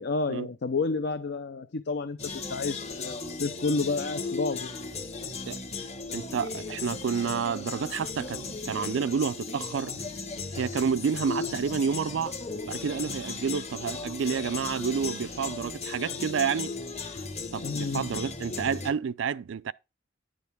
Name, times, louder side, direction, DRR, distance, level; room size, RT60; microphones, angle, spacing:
voice 1, 0.0-4.8 17.6-18.1, left 3 dB, 60° left, 0.6 m, -30 dB
sound 1, 2.2-18.9, left 4 dB, 35° left, 1.2 m, -36 dB
voice 2, 6.1-8.4 8.7-9.9 10.5-12.4 12.6-16.7 17.5-19.7, right 6 dB, 70° right, 0.4 m, -29 dB
10.5 x 6.5 x 3.5 m
head